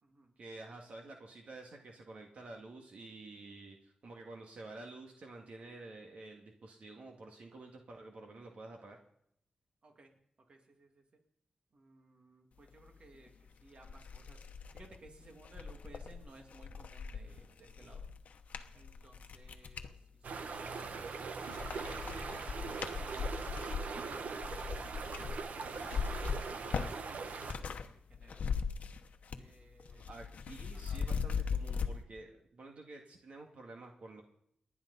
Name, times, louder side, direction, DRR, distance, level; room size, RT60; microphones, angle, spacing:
voice 1, 0.4-9.0 29.9-34.2, right 2 dB, 60° right, 1 dB, 2.2 m, -50 dB
voice 2, 9.8-10.1 10.5-11.0 11.7-14.4 14.7-18.1 18.7-19.9 20.3-22.0 22.6-23.6 28.1-28.5 29.4-30.1 30.7-31.0, right 2 dB, 45° right, 3 dB, 2.4 m, -60 dB
sound 1, 13.3-13.4 13.8-19.9 20.5-21.1 21.4-27.9 28.1-29.5 29.8-31.9, left 6 dB, 75° left, 1.1 m, -39 dB
sound 2, 20.2-27.5, right 4 dB, 90° right, 1.2 m, -41 dB
29.5 x 10.5 x 4.1 m, 0.69 s
wide cardioid pair, 175°, 3 cm